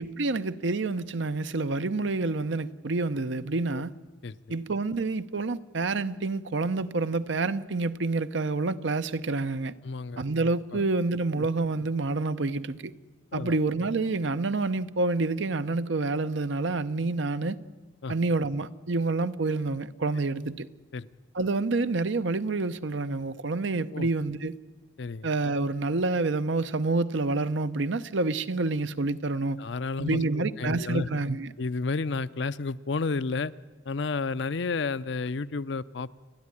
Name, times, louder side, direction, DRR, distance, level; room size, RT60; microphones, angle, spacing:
voice 1, 0.0-3.9 4.5-9.7 10.2-12.9 13.3-17.6 18.1-20.7 21.3-24.6 25.2-29.6 30.0-31.5, right 3 dB, 75° right, 0.7 m, -28 dB
voice 2, 9.8-10.2 10.7-10.8 11.4-11.5 13.3-13.5 18.0-18.1 20.9-21.1 23.9-24.1 25.0-25.3 29.6-31.1 31.6-33.5 33.9-36.1, left 4 dB, 70° left, 0.6 m, -31 dB
29.5 x 10.5 x 9.9 m
head